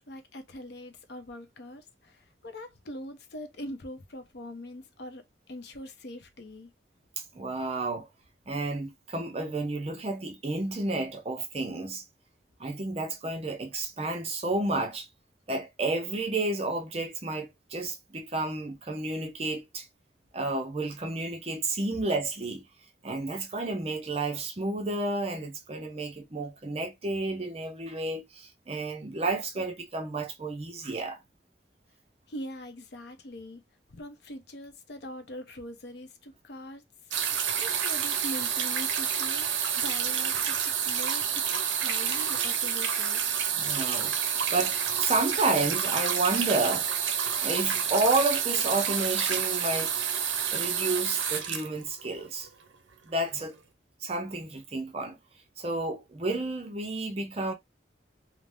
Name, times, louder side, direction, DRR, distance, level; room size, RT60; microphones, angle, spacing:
voice 1, 0.1-6.7 32.3-33.6 33.9-36.8 37.6-43.2, left 1 dB, 65° left, 0.6 m, -42 dB
voice 2, 7.2-8.1 8.5-12.0 12.6-15.1 15.5-19.9 20.3-22.6 23.0-31.2 43.5-46.9 47.4-50.1 50.5-52.5 53.0-53.6 54.0-55.2 55.6-57.5, right 2 dB, 30° right, 0.5 m, -31 dB
sound 1, 37.1-52.5 53.4-53.5, right 8 dB, 80° right, 0.5 m, -29 dB
2.5 x 2.1 x 3.3 m
head